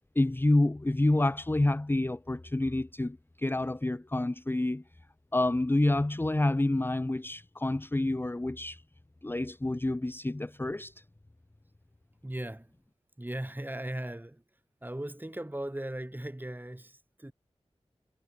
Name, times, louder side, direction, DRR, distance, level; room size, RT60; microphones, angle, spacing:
voice 1, 0.2-4.8 5.3-8.8 9.2-10.9, left 2 dB, 20° left, 0.7 m, -28 dB
voice 2, 12.2-12.7 13.2-14.4 14.8-17.3, right 1 dB, 15° right, 5.8 m, -38 dB
wide cardioid pair, 70°, 11 cm